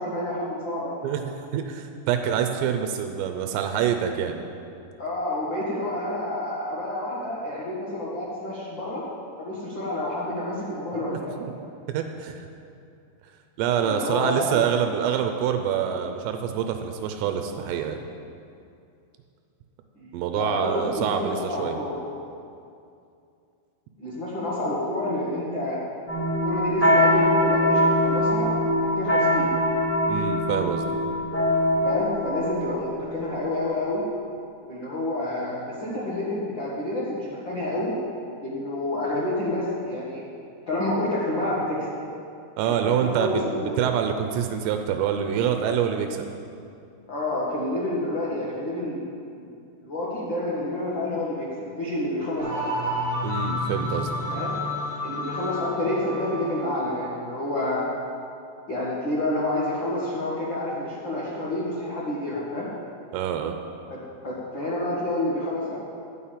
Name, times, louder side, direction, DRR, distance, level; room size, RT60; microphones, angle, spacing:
voice 1, 0.0-1.1 5.0-9.0 9.4-11.2 13.8-14.6 20.0-22.0 24.0-25.8 26.4-28.5 28.8-29.5 31.8-34.0 34.6-37.9 38.4-40.2 40.7-41.9 42.6-43.4 43.6-43.7 47.1-49.0 49.4-49.5 49.8-52.6 54.3-54.5 55.0-57.9 58.7-62.7 63.9-65.8, left 1 dB, 75° left, -7 dB, 1.0 m, -29 dB
voice 2, 1.0-4.4 11.1-11.5 11.9-12.5 13.6-18.0 20.1-21.8 30.1-30.9 42.6-46.3 53.2-54.4 63.1-63.5, right 8 dB, 85° right, 5 dB, 2.8 m, -26 dB
sound 1, 26.1-33.6, left 1 dB, 10° left, 0.9 m, -23 dB
sound 2, 52.4-57.0, left 1 dB, 30° right, 3.0 m, -30 dB
11.5 x 5.6 x 8.6 m, 2.5 s
omnidirectional pair, 5.0 m